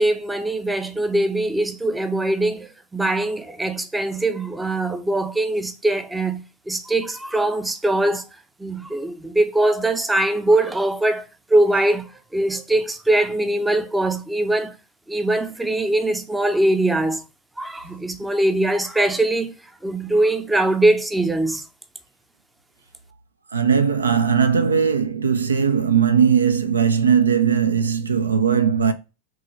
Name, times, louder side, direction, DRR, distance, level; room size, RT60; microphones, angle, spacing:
voice 1, 0.0-8.2 8.6-11.2 11.5-14.8 15.1-17.2 17.6-19.6 19.8-21.6, right 1 dB, 5° right, 0.5 m, -22 dB
voice 2, 23.5-28.9, right 7 dB, 75° right, 0.4 m, -19 dB
4.6 x 2.9 x 2.9 m
figure-of-eight pair, 90°, 0 cm